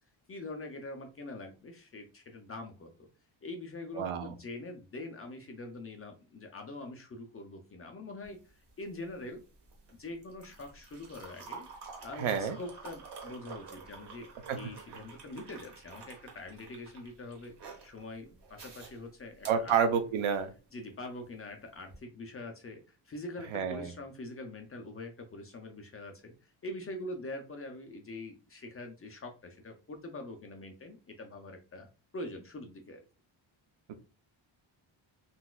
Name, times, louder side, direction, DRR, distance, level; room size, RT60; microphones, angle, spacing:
voice 1, 0.3-3.1 3.4-9.4 9.9-11.7 12.0-17.5 17.8-19.7 20.7-33.0, left 2 dB, 30° left, 4 dB, 0.4 m, -44 dB
voice 2, 3.9-4.3 12.2-12.6 14.5-14.6 19.5-20.5 23.5-23.9 33.9-34.0, right 7 dB, 75° right, 9 dB, 0.7 m, -29 dB
sound 1, 8.2-20.5 21.8-22.0, right 5 dB, 55° right, 1.0 m, -50 dB
3.9 x 2.3 x 2.2 m, 0.32 s
wide cardioid pair, 180°, 48 cm